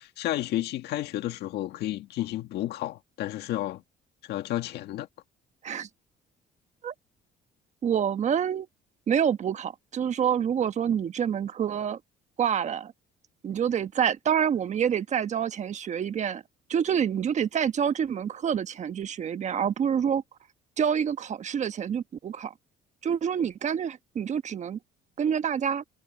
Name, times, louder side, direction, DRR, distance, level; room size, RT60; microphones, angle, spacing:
voice 1, 0.0-3.8 4.3-5.1, left 14 dB, 75° left, 1.7 m, -31 dB
voice 2, 7.8-8.7 9.1-12.0 12.4-12.9 13.4-16.4 16.7-20.2 20.8-22.5 23.0-24.8 25.2-25.8, right 8 dB, 45° right, 1.2 m, -27 dB
cardioid pair, 110°, 17 cm